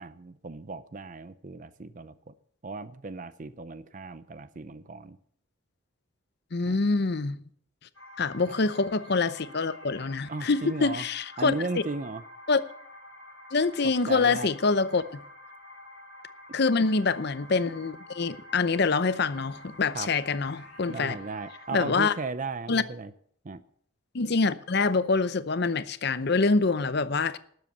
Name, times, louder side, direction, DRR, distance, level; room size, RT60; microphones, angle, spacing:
voice 1, 0.0-2.3 2.6-5.2 6.7-6.8 8.5-8.6 10.3-11.1 11.4-12.2 14.1-14.5 19.9-20.1 20.9-23.1 23.4-23.6, right 3 dB, 40° right, 0.5 m, -36 dB
voice 2, 6.5-7.4 8.2-11.5 12.5-12.6 13.5-15.2 16.5-21.2 21.7-22.1 22.7-22.8 24.1-27.4, left 4 dB, 50° left, 0.7 m, -25 dB
sound 1, 7.9-22.2, left 1 dB, 85° left, 3.0 m, -48 dB
12.5 x 7.8 x 8.2 m
head